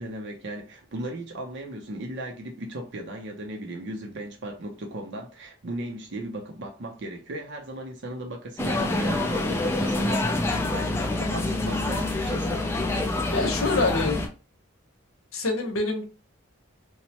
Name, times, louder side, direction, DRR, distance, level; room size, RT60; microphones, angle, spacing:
voice 1, 0.0-12.7, right 1 dB, 55° right, 0.5 m, -37 dB
sound 1, 8.6-14.3, left 2 dB, 10° left, 0.3 m, -26 dB
voice 2, 13.3-14.2 15.3-16.0, left 3 dB, 75° left, 0.8 m, -25 dB
3.1 x 2.1 x 2.8 m
head